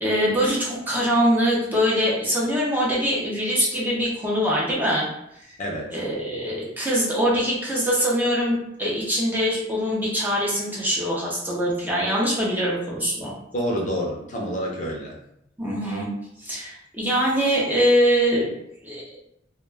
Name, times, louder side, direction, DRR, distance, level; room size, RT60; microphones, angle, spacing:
voice 1, 0.0-5.1 5.9-13.3 15.6-16.1 16.4-18.5 18.8-19.2, equal, 10° right, -5 dB, 0.5 m, -23 dB
voice 2, 5.6-6.0 13.5-15.2, equal, 45° left, -2 dB, 0.6 m, -28 dB
2.2 x 2.2 x 3.2 m, 0.79 s
head